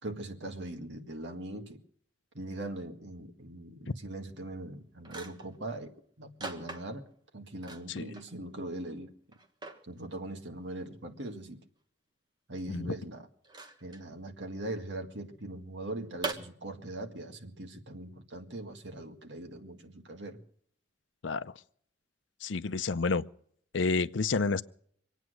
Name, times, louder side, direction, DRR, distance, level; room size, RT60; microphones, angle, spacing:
voice 1, 0.0-1.8 2.3-5.9 6.2-7.1 7.3-9.1 9.9-11.6 12.5-13.3 13.8-20.4, right 1 dB, 75° right, 2.0 m, -41 dB
sound 1, 4.6-4.7 5.0-5.6 6.4-7.2 7.6-8.3 8.7-8.8 9.3-9.8 11.2-11.3 13.4-14.0 16.2-16.3, right 3 dB, 25° right, 1.4 m, -40 dB
voice 2, 22.4-23.2 23.7-24.6, left 4 dB, 90° left, 0.6 m, -29 dB
24.5 x 9.2 x 6.4 m
head